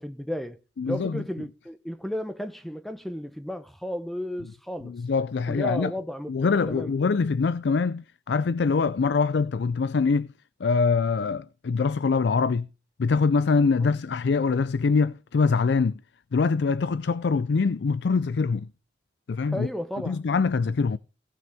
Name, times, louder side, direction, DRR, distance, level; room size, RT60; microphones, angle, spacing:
voice 1, 0.0-4.9 5.5-6.9 13.8-14.0 19.5-20.2, equal, ahead, 0.9 m, -34 dB
voice 2, 0.8-1.2 4.8-5.9 6.3-10.3 10.6-12.7 13.0-16.0 16.3-18.7 19.3-19.7 20.1-21.0, left 4 dB, 75° left, 0.4 m, -24 dB
17.5 x 6.2 x 3.4 m
head